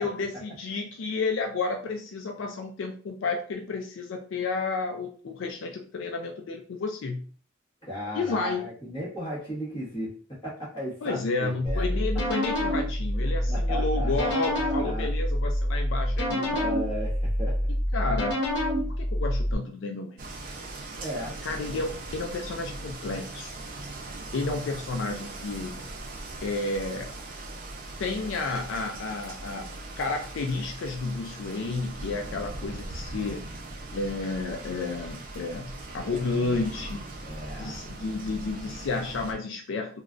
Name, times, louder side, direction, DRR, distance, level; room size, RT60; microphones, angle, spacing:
voice 1, 0.0-7.3 8.1-8.7 11.0-16.5 17.9-18.4 18.8-20.2 21.4-23.6 24.3-25.9 26.4-27.1 28.0-29.7 30.0-33.5 33.9-37.1 37.6-40.0, left 3 dB, 80° left, 3 dB, 0.4 m, -31 dB
voice 2, 7.8-11.9 13.5-15.1 16.4-17.7 21.0-21.4 37.2-37.8, equal, 25° left, -7 dB, 1.4 m, -36 dB
sound 1, 11.7-19.5, equal, 60° left, 1.1 m, -27 dB
sound 2, 20.2-39.3, right 2 dB, 45° right, 0.5 m, -40 dB
3.0 x 2.3 x 2.5 m, 0.43 s
head